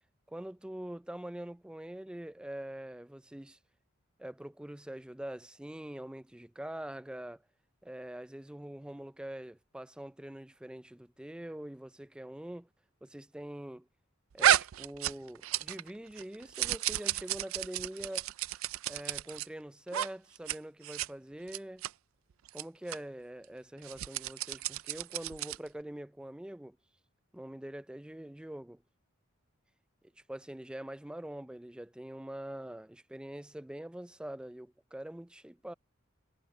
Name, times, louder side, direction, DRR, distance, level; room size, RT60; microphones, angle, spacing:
voice 1, 0.3-3.6 4.2-7.4 7.8-12.7 13.0-13.9 14.3-18.3 18.9-21.8 22.5-26.8 27.3-28.8 30.3-35.7, right 1 dB, 5° right, 0.3 m, -44 dB
sound 1, 14.4-15.9 16.2-19.5 19.9-20.1 20.3-20.6 20.8-21.1 21.5-21.9 22.5-22.6 22.9-23.0 23.8-25.7, right 11 dB, 85° right, 0.4 m, -32 dB
head